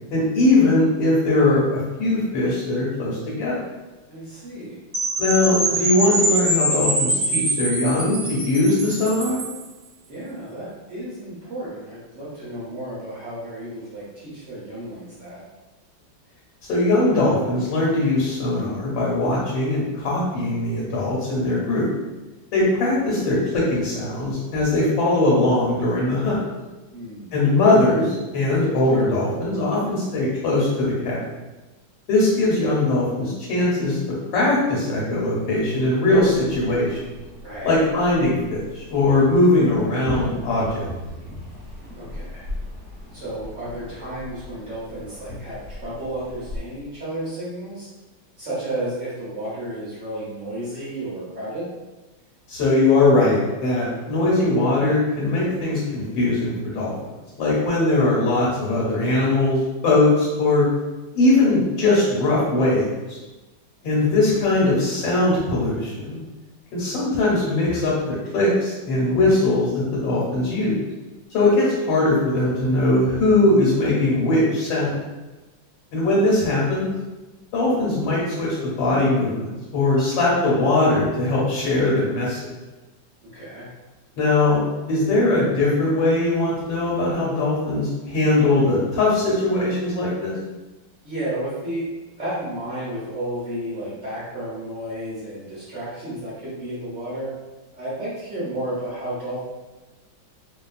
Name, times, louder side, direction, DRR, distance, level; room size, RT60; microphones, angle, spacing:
voice 1, 0.1-3.6 5.2-9.4 16.7-21.9 22.5-26.4 27.3-31.2 32.1-34.0 34.3-37.0 37.6-40.8 52.5-56.9 57.4-59.6 59.8-60.7 61.1-63.2 63.8-66.2 66.7-67.9 68.3-70.8 71.3-75.0 75.9-76.9 77.5-82.4 84.2-84.6 84.9-90.3, left 2 dB, 75° left, -6 dB, 1.4 m, -20 dB
voice 2, 4.1-4.7 10.1-15.4 26.9-27.3 37.4-37.8 42.0-42.5 43.1-47.9 48.4-51.7 76.1-76.3 83.2-83.7 91.0-91.8 92.2-97.3 97.7-99.4, right 1 dB, 60° right, -10 dB, 0.8 m, -32 dB
Percussion / Wind chime, 4.9-9.6, right 1 dB, 90° right, 0.3 m, -24 dB
sound 1, 36.1-46.6, left 1 dB, 30° right, 1.2 m, -37 dB
2.9 x 2.3 x 2.4 m, 1.1 s
omnidirectional pair, 2.0 m